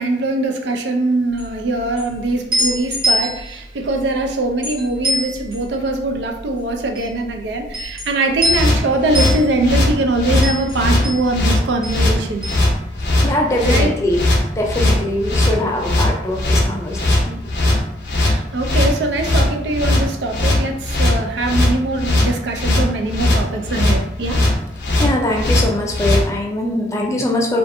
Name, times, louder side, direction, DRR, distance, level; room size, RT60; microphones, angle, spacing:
voice 1, 0.0-12.4 13.6-13.9 18.1-24.4, right 2 dB, 75° right, 3 dB, 0.4 m, -22 dB
sound 1, 1.3-13.6 13.8-14.9, equal, 55° right, 1.1 m, -26 dB
sound 2, 8.4-26.2, left 1 dB, 80° left, 0.5 m, -18 dB
voice 2, 13.2-14.2 14.6-17.4 25.0-27.6, left 1 dB, 15° left, 0 dB, 0.3 m, -21 dB
2.5 x 2.3 x 2.6 m, 0.83 s
head